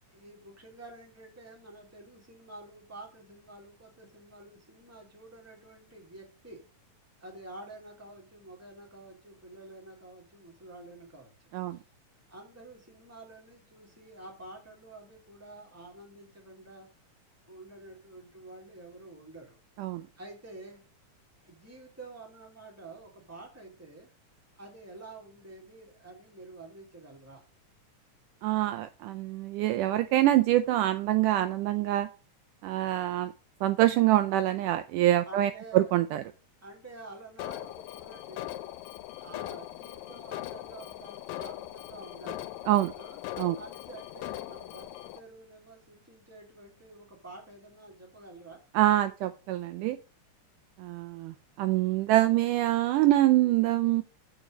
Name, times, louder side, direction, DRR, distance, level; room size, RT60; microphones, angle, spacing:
voice 1, 0.1-6.6 7.2-11.8 12.3-16.9 17.4-19.6 20.2-20.8 21.4-24.1 24.5-27.4 35.2-35.9 36.6-38.5 39.1-42.5 43.0-43.2 43.5-48.6, right 2 dB, 5° right, 0 dB, 2.4 m, -49 dB
voice 2, 28.4-32.1 32.6-33.3 33.6-36.2 42.7-42.9 43.4-43.6 48.7-50.0 50.8-54.0, right 14 dB, 80° right, 9 dB, 2.0 m, -25 dB
Alarm, 37.4-45.2, left 14 dB, 90° left, 2.3 m, -40 dB
8.9 x 5.1 x 6.2 m, 0.33 s
omnidirectional pair, 3.9 m